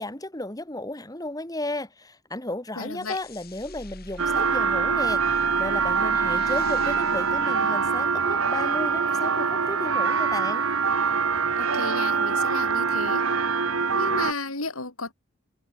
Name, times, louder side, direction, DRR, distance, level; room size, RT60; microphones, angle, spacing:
voice 1, 0.0-10.6, left 1 dB, 15° left, 2.7 m, -34 dB
voice 2, 2.8-3.2 11.6-13.3 13.9-15.1, left 3 dB, 80° left, 5.6 m, -33 dB
sound 1, 3.0-8.4, left 1 dB, 45° left, 4.2 m, -44 dB
sound 2, 4.2-14.3, right 5 dB, 80° right, 1.9 m, -24 dB
head